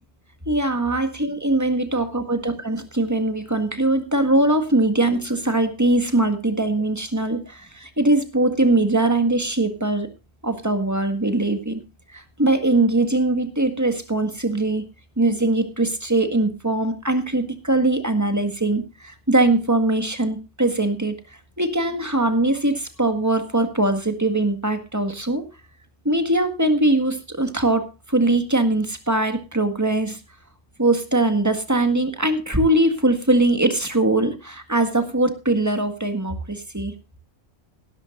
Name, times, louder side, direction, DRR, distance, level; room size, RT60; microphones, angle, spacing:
voice 1, 0.5-10.1 10.4-11.8 12.1-14.8 15.2-25.4 26.1-30.2 30.8-37.0, right 2 dB, 15° right, 7 dB, 1.8 m, -21 dB
17.0 x 13.0 x 2.5 m, 0.28 s
omnidirectional pair, 1.1 m